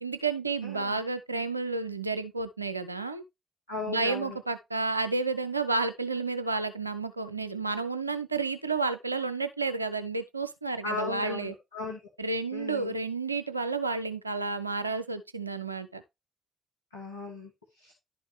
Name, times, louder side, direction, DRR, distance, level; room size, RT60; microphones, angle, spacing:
voice 1, 0.0-3.2 3.9-11.5 12.2-16.0, right 3 dB, 90° right, 0.4 m, -31 dB
voice 2, 0.6-1.0 3.7-4.4 10.8-12.0 12.5-12.9 16.9-17.5 17.8-17.9, left 3 dB, 85° left, 1.1 m, -37 dB
11.0 x 5.2 x 3.2 m
figure-of-eight pair, 40°, 0 cm